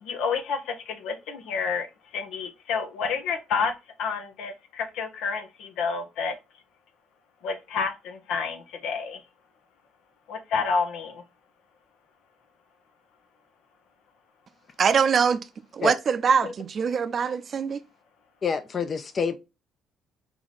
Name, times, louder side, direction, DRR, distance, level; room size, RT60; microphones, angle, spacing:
voice 1, 0.0-1.9 2.1-3.7 4.0-6.3 7.4-9.2 10.3-11.2, left 5 dB, 75° left, 0.9 m, -29 dB
voice 2, 14.8-15.4 15.7-17.8, right 6 dB, 50° right, 0.5 m, -23 dB
voice 3, 18.4-19.4, left 6 dB, 45° left, 0.7 m, -27 dB
3.6 x 2.9 x 4.1 m
supercardioid pair, 70°, 0 cm